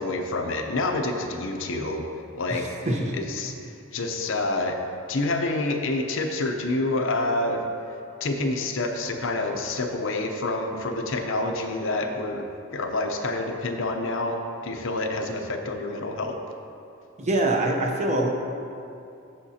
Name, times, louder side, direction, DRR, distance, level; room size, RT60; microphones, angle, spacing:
voice 1, 0.0-2.1 2.4-2.7 3.1-3.5 3.9-4.8 5.1-7.6 8.2-16.4, left 2 dB, 60° left, 4 dB, 0.7 m, -28 dB
voice 2, 2.5-3.2 17.2-18.3, right 1 dB, 30° right, 1 dB, 0.8 m, -25 dB
14.5 x 5.9 x 2.8 m, 2.6 s
head